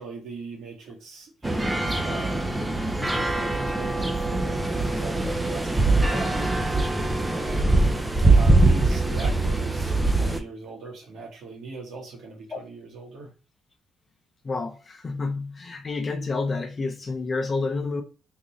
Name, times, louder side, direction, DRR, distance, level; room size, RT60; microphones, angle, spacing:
voice 1, 0.0-2.4 3.3-6.5 7.3-7.7 8.2-13.3, right 3 dB, 65° right, 1.5 m, -40 dB
sound 1, 1.4-10.4, right 2 dB, 10° right, 0.6 m, -22 dB
voice 2, 14.4-18.0, left 3 dB, 30° left, 0.8 m, -29 dB
3.7 x 2.6 x 3.1 m
cardioid pair, 85°, 0 cm